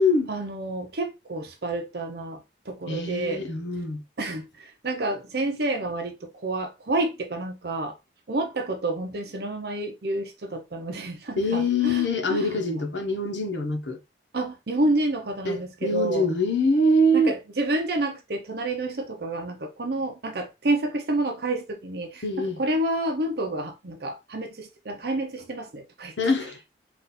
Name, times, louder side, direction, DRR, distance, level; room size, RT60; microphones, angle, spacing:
voice 1, 0.3-3.4 4.2-8.0 8.3-12.6 14.3-16.3 17.1-26.1, right 2 dB, 55° right, 0.7 m, -29 dB
voice 2, 2.9-4.0 11.4-14.0 15.4-17.3 22.2-22.6 26.2-26.6, left 1 dB, 80° left, 1.0 m, -24 dB
3.9 x 2.6 x 4.1 m
head